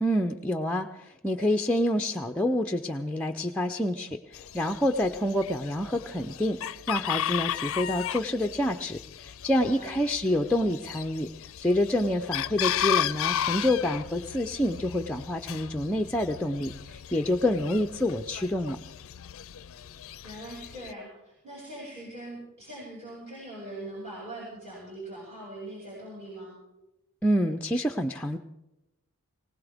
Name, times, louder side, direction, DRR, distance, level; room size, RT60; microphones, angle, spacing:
voice 1, 0.0-11.3 11.6-18.8 27.2-28.4, left 1 dB, 5° left, 3 dB, 0.6 m, -27 dB
Chicken rooster, 4.3-20.9, left 10 dB, 65° left, 0.4 m, -35 dB
voice 2, 9.5-10.0 20.2-26.6, right 1 dB, 30° right, -6 dB, 6.1 m, -42 dB
20.5 x 18.5 x 3.5 m, 0.96 s
head